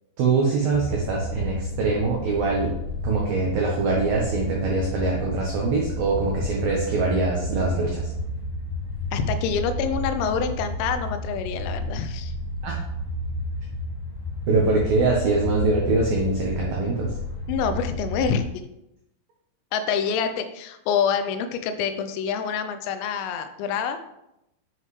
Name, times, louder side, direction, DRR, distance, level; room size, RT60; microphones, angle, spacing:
voice 1, 0.2-2.7 3.0-8.1 12.6-12.7 14.5-17.1, right 3 dB, 85° right, -2 dB, 2.0 m, -23 dB
sound 1, 0.7-18.4, left 1 dB, 50° left, 3.4 m, -31 dB
voice 2, 9.1-12.3 17.5-18.4 19.7-24.0, left 6 dB, 90° left, 9 dB, 3.4 m, -26 dB
7.8 x 7.6 x 3.2 m, 0.86 s
omnidirectional pair, 5.9 m